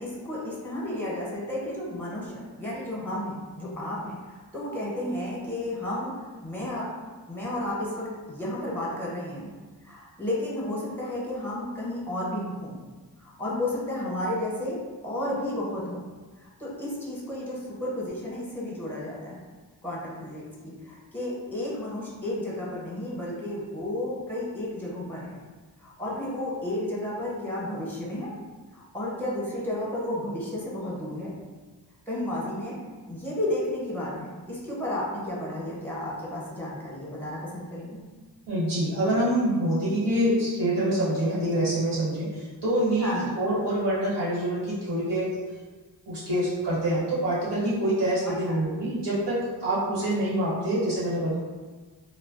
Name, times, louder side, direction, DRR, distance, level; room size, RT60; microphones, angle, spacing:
voice 1, 0.0-6.1 6.4-6.9 7.3-9.5 9.8-12.8 13.2-16.0 16.4-19.4 19.8-25.4 25.8-28.3 28.7-31.3 32.1-32.8 33.1-38.0 40.2-40.4 43.0-43.3 48.3-48.5 50.2-50.3, left 1 dB, 5° left, -5 dB, 0.9 m, -32 dB
voice 2, 38.5-45.3 46.1-51.4, right 1 dB, 70° right, -10 dB, 1.3 m, -26 dB
2.2 x 2.1 x 3.8 m, 1.4 s
cardioid pair, 90°, 41 cm